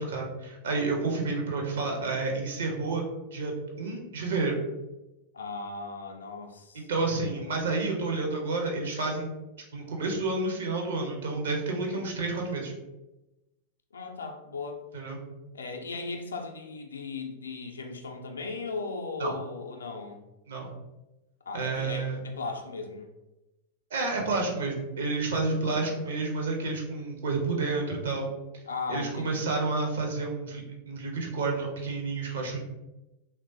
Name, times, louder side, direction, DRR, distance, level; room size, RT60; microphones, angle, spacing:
voice 1, 0.0-3.0 3.3-4.6 6.7-9.4 9.7-12.7 14.9-15.2 19.2-19.3 20.5-20.7 21.5-22.2 23.9-28.3 28.9-32.6, right 3 dB, 65° right, 1 dB, 0.6 m, -30 dB
voice 2, 5.3-6.9 7.2-7.6 11.9-12.4 13.9-14.8 15.5-20.2 21.5-23.1 25.5-26.0 28.7-29.5, left 4 dB, 70° left, 4 dB, 0.4 m, -37 dB
3.1 x 2.1 x 2.6 m, 1.0 s
figure-of-eight pair, 90°, 0 cm